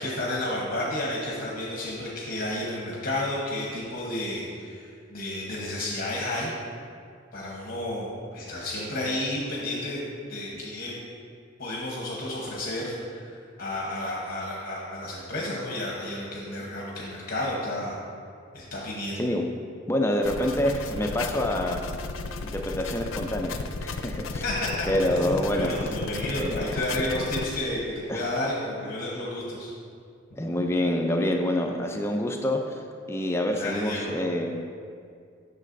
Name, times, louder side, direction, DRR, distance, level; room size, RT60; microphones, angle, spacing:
voice 1, 0.0-6.5 7.3-10.0 10.3-10.9 11.6-18.0 18.5-19.2 24.4-29.7 33.6-34.1, left 1 dB, 45° left, -4 dB, 1.0 m, -31 dB
voice 2, 19.9-21.9 22.4-24.5 24.9-25.7 26.4-26.8 28.1-28.3 30.4-32.8 33.1-34.5, left 1 dB, 15° left, 3 dB, 0.3 m, -27 dB
sound 1, 20.2-27.6, left 3 dB, 90° left, 0.4 m, -34 dB
9.4 x 6.4 x 2.6 m, 2.3 s
head